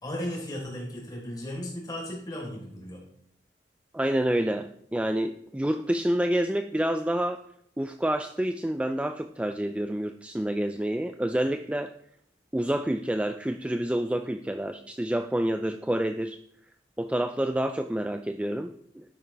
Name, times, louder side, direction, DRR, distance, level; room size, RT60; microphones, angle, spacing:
voice 1, 0.0-3.0, left 1 dB, 25° left, -3 dB, 4.0 m, -35 dB
voice 2, 3.9-7.4 7.8-11.9 12.5-16.4 17.0-19.0, right 1 dB, 5° right, 7 dB, 0.3 m, -28 dB
12.5 x 8.8 x 3.4 m, 0.69 s
head